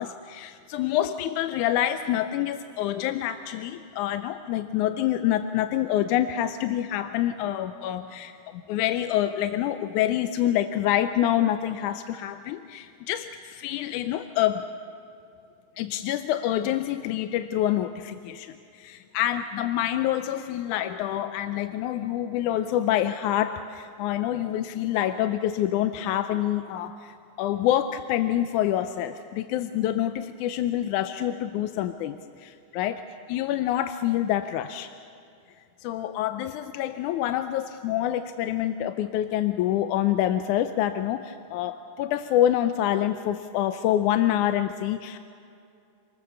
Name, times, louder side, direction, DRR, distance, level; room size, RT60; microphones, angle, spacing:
voice 1, 0.0-14.6 15.8-33.0 33.3-34.9 35.8-45.2, left 12 dB, 85° left, 9 dB, 2.1 m, -27 dB
28.0 x 20.5 x 6.9 m, 2.5 s
omnidirectional pair, 3.4 m